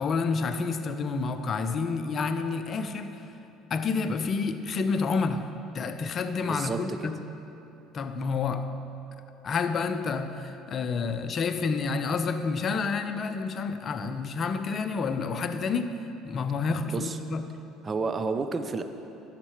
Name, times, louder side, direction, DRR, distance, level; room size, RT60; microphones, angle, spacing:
voice 1, 0.0-3.3 3.7-7.2 7.9-8.8 9.4-15.9 16.2-17.6, left 4 dB, 45° left, 8 dB, 0.6 m, -29 dB
voice 2, 6.4-7.1 16.8-17.2 17.8-18.8, right 4 dB, 30° right, 8 dB, 0.7 m, -31 dB
11.0 x 6.7 x 4.9 m, 2.9 s
hypercardioid pair, 70°, 0 cm